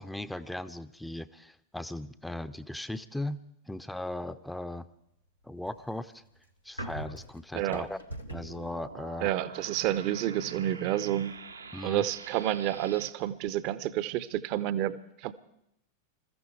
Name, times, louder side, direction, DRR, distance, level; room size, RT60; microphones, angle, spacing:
voice 1, 0.0-3.4 3.7-4.9 5.4-6.2 6.6-8.0 8.3-9.3 11.7-12.0, left 1 dB, 5° left, 13 dB, 0.5 m, -38 dB
sound 1, 5.4-8.6, right 1 dB, 90° left, 1.1 m, -42 dB
voice 2, 7.5-7.9 9.2-11.3 11.8-15.3, right 13 dB, 45° right, 16 dB, 0.6 m, -30 dB
sound 2, 8.1-13.1, right 4 dB, 80° right, 0.8 m, -46 dB
21.5 x 14.0 x 4.6 m, 0.79 s
figure-of-eight pair, 90°, 0 cm